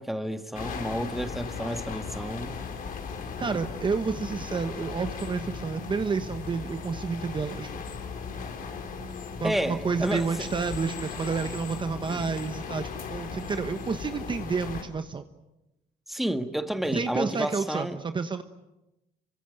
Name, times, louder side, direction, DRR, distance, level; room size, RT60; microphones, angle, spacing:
voice 1, 0.0-2.5 9.4-10.3 12.1-12.2 16.1-18.0, equal, ahead, 1.7 m, -30 dB
sound 1, 0.5-14.8, left 5 dB, 55° left, 4.3 m, -37 dB
voice 2, 3.4-7.7 9.4-15.2 16.9-18.4, right 5 dB, 30° right, 1.2 m, -30 dB
27.0 x 24.5 x 7.9 m
cardioid pair, 110°, 17 cm